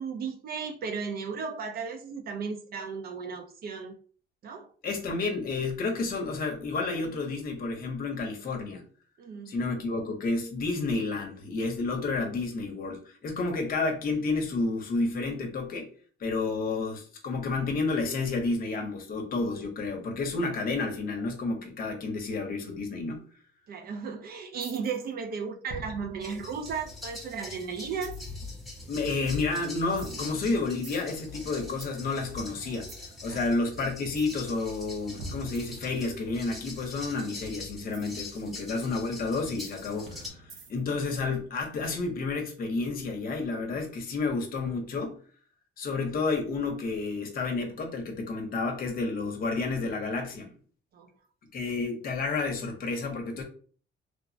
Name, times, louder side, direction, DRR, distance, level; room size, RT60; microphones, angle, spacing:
voice 1, 0.0-4.0 4.4-4.7 9.2-9.5 23.7-28.2 33.3-33.4 38.4-38.6 50.9-51.1, right 5 dB, 50° right, 0.4 m, -35 dB
voice 2, 4.8-8.8 9.5-15.9 16.2-23.2 28.9-32.9 33.2-40.3 40.7-45.2 45.8-50.5 51.5-53.4, left 3 dB, 50° left, 0.7 m, -30 dB
sound 1, 24.6-25.1 25.7-27.3 28.0-28.4 29.3-29.5 30.0-32.0 32.9-33.1 34.1-34.5 35.2-36.4 37.9-38.1 38.8-38.9 39.6-41.0, right 1 dB, 90° right, 0.8 m, -45 dB
sound 2, 26.2-40.3, left 3 dB, ahead, 0.7 m, -43 dB
3.1 x 2.0 x 2.5 m
cardioid pair, 165°, 20 cm